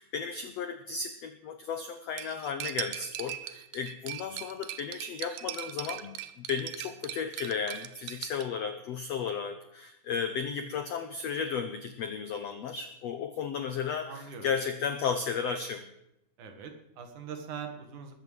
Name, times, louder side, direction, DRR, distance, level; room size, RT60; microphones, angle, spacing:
voice 1, 0.0-15.9, left 6 dB, 90° left, 8 dB, 1.4 m, -34 dB
Cutlery silverware, 2.2-8.4, right 13 dB, 80° right, 2.5 m, -40 dB
voice 2, 14.1-14.5 16.4-18.1, right 6 dB, 60° right, 5 dB, 2.9 m, -42 dB
21.0 x 7.5 x 8.0 m, 0.83 s
omnidirectional pair, 4.3 m